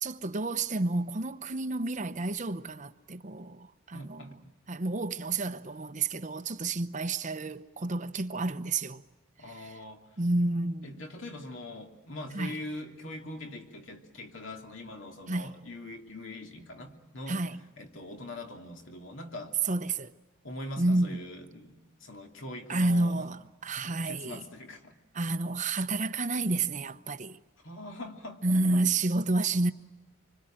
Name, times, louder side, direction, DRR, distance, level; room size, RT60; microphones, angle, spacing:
voice 1, 0.0-4.3 4.7-9.0 9.5-9.8 10.2-11.0 12.3-12.6 15.3-15.5 17.3-17.6 19.7-20.1 20.8-21.2 22.7-24.4 25.1-27.4 28.4-29.7, right 2 dB, 35° right, 0.8 m, -30 dB
voice 2, 3.9-4.4 9.4-10.2 10.8-17.4 17.8-19.6 20.4-23.2 23.7-24.9 27.6-28.4 28.7-28.8, left 1 dB, 60° left, 2.7 m, -42 dB
26.0 x 25.0 x 9.0 m
head